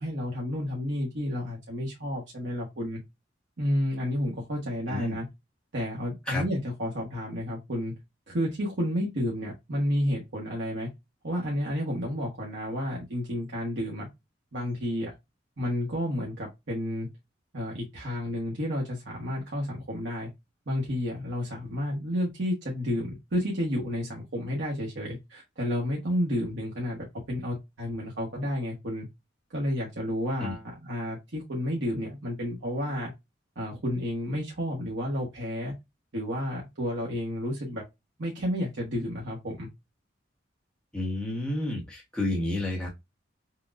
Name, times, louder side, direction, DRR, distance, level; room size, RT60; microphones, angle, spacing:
voice 1, 0.0-3.0 3.6-5.3 5.7-7.9 8.3-10.9 11.2-14.1 14.5-15.1 15.6-17.1 17.5-20.3 20.7-29.1 29.5-33.1 33.6-35.7 36.1-37.8 38.2-39.7, equal, 75° right, 1.1 m, -31 dB
voice 2, 4.9-5.2 6.3-6.5 30.4-30.5 40.9-42.9, left 2 dB, 5° left, 1.1 m, -30 dB
5.8 x 2.2 x 2.4 m
head